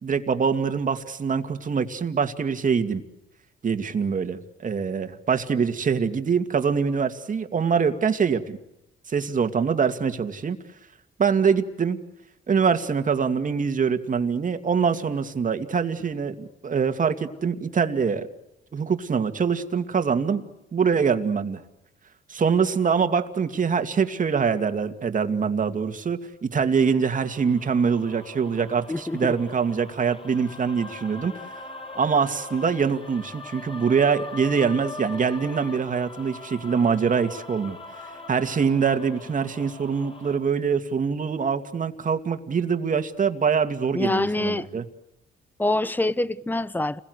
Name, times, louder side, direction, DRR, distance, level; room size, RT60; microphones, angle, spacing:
voice 1, 0.0-3.0 3.6-8.6 9.1-10.6 11.2-12.0 12.5-18.3 18.7-20.4 20.7-21.6 22.3-31.3 32.0-37.8 38.3-44.8, right 6 dB, 40° right, 2.4 m, -24 dB
sound 1, 26.8-40.4, left 3 dB, 25° left, 6.5 m, -41 dB
voice 2, 28.9-29.3 43.9-44.7 45.6-47.0, left 2 dB, 10° left, 1.0 m, -25 dB
30.0 x 21.5 x 8.2 m
cardioid pair, 90°, 20 cm